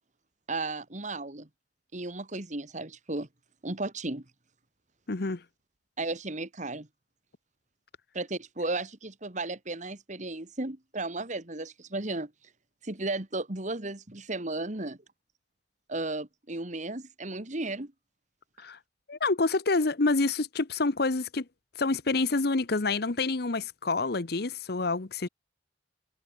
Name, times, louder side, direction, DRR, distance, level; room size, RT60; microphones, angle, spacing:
voice 1, 0.5-1.5 1.9-3.3 3.6-4.2 6.0-6.9 8.1-12.3 12.8-15.0 15.9-17.9, right 2 dB, 40° right, 2.0 m, -34 dB
voice 2, 5.1-5.4 18.6-18.8 19.1-21.4 21.8-25.3, left 3 dB, 60° left, 1.0 m, -27 dB
head